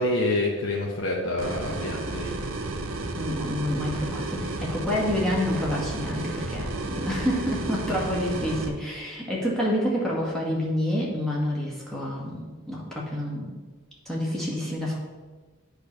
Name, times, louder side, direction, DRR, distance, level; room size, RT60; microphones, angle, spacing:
voice 1, 0.0-2.3, left 1 dB, 65° left, -2 dB, 0.8 m, -27 dB
sound 1, 1.4-8.7, right 2 dB, 70° right, 0.7 m, -32 dB
voice 2, 3.1-12.4 12.7-13.5 14.0-15.0, left 1 dB, ahead, -5 dB, 1.5 m, -28 dB
8.4 x 3.2 x 5.8 m, 1.4 s
head